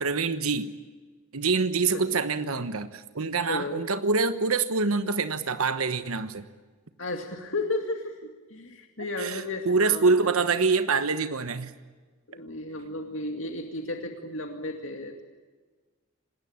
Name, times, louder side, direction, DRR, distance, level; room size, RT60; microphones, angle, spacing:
voice 1, 0.0-0.7 1.3-6.4 9.2-11.7, right 4 dB, 80° right, 10 dB, 1.2 m, -25 dB
voice 2, 3.5-3.8 7.0-10.1 12.3-15.2, left 2 dB, 65° left, 4 dB, 2.2 m, -34 dB
26.5 x 20.0 x 8.8 m, 1.4 s
head